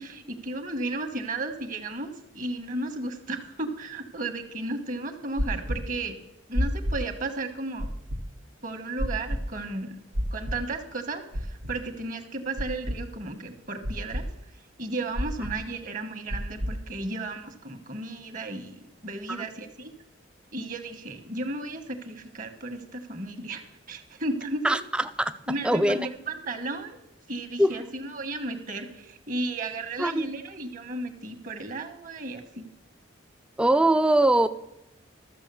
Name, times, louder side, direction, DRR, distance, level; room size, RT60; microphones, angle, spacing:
voice 1, 0.0-6.2 6.5-7.9 8.6-9.9 10.3-14.3 14.8-19.9 20.5-24.8 25.5-27.0 27.3-32.6, right 2 dB, 40° right, 7 dB, 1.3 m, -34 dB
sound 1, 5.4-5.8 6.5-7.0 7.8-8.2 9.0-9.4 10.1-10.6 11.3-11.7 12.6-13.0 13.8-14.2 15.1-15.5 16.3-16.7, equal, 80° right, 1.3 m, -28 dB
voice 2, 24.6-25.3 25.6-26.1 27.6-27.7 30.0-30.3 33.6-34.5, right 1 dB, 5° right, 13 dB, 0.4 m, -22 dB
13.0 x 7.3 x 6.9 m, 0.87 s
head